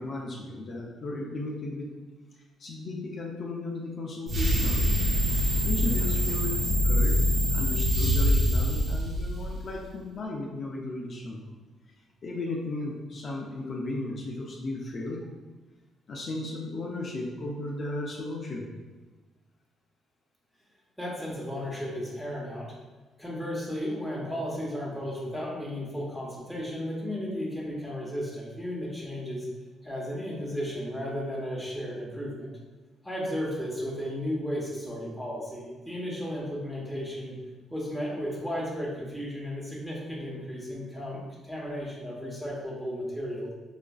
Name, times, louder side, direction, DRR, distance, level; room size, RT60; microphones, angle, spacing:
voice 1, 0.0-1.9 2.6-4.9 5.6-6.6 6.8-7.2 7.5-11.4 12.2-15.2 16.1-18.7, left 2 dB, 50° left, -2 dB, 0.5 m, -35 dB
sound 1, 4.3-9.7, equal, 60° right, 0.8 m, -24 dB
voice 2, 21.0-22.7 23.2-29.5 29.8-32.5 33.0-37.3 37.7-43.5, equal, ahead, -5 dB, 1.1 m, -34 dB
5.0 x 2.4 x 2.3 m, 1.3 s
cardioid pair, 90°, 0 cm